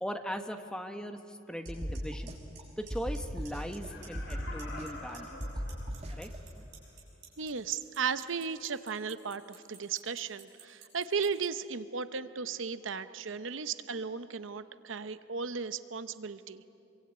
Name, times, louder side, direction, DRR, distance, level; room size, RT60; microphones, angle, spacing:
voice 1, 0.0-2.4 2.8-5.4 6.1-6.3 6.6-6.7, equal, 5° left, 6 dB, 1.2 m, -39 dB
Clock, 1.6-1.7 1.9-2.3 2.5-3.2 3.4-3.8 4.0-4.9 5.1-11.4, right 10 dB, 55° right, 6.8 m, -51 dB
sound 1, 1.7-2.6 2.9-3.9 4.2-5.1 5.4-6.4, equal, 30° right, 2.3 m, -37 dB
Laughter, 3.7-6.4 6.8-6.9, left 2 dB, 65° left, 4.8 m, -47 dB
voice 2, 7.4-16.6, right 5 dB, 75° right, 12 dB, 0.8 m, -35 dB
26.5 x 23.0 x 8.9 m, 2.7 s
head